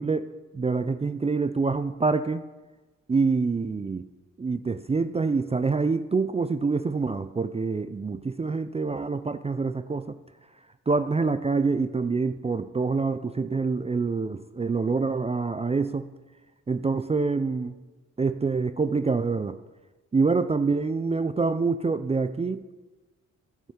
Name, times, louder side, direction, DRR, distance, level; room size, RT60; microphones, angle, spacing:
voice 1, 0.0-2.4 3.1-4.1 4.4-10.2 10.9-16.1 16.7-17.7 18.2-19.6 20.1-22.6, right 4 dB, 20° right, 11 dB, 0.4 m, -26 dB
15.0 x 5.6 x 5.8 m, 1.2 s
cardioid pair, 85°, 30 cm